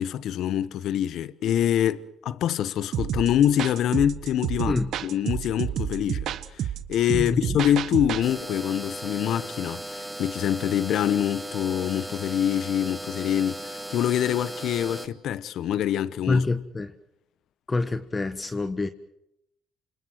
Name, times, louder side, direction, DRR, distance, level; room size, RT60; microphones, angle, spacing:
voice 1, 0.0-16.4, left 10 dB, 70° left, 1.1 m, -25 dB
sound 1, 2.9-8.3, right 10 dB, 70° right, 1.3 m, -30 dB
voice 2, 7.1-7.6 16.3-16.9 17.7-18.9, left 3 dB, 25° left, 1.5 m, -26 dB
sound 2, 8.2-15.1, right 1 dB, 5° right, 2.5 m, -37 dB
28.5 x 26.5 x 4.7 m
supercardioid pair, 65°, 0 cm